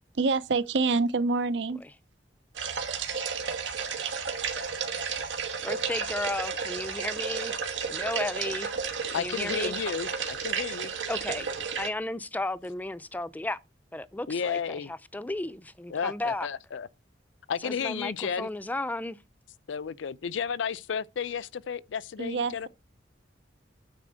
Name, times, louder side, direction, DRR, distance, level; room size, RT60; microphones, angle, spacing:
voice 1, 0.1-1.8 22.2-22.7, right 3 dB, 65° right, 0.6 m, -26 dB
sound 1, 2.5-11.9, right 6 dB, 85° right, 1.5 m, -32 dB
voice 2, 5.6-7.5 7.9-8.7 9.1-9.7 11.1-11.5 11.8-13.6 13.9-16.5 17.6-19.2, left 2 dB, 10° left, 0.4 m, -34 dB
voice 3, 9.1-10.9 14.3-14.9 15.9-16.9 17.5-18.5 19.7-22.7, left 6 dB, 90° left, 0.5 m, -32 dB
9.3 x 4.2 x 6.2 m
head